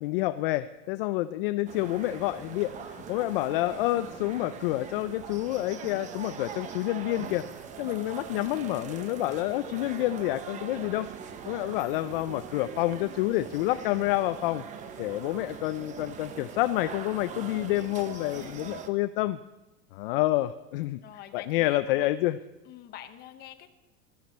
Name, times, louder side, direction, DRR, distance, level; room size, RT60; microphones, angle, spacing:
voice 1, 0.0-11.1 11.4-14.6 15.0-19.4 19.9-21.0 21.3-22.4, left 16 dB, 50° left, 13 dB, 0.4 m, -28 dB
sound 1, 1.7-18.9, right 7 dB, 20° right, 0.8 m, -42 dB
voice 2, 18.0-18.7 21.0-22.1 22.6-23.7, left 12 dB, 30° left, 7 dB, 0.9 m, -47 dB
15.0 x 13.0 x 4.3 m, 1.0 s
supercardioid pair, 155°, 35 cm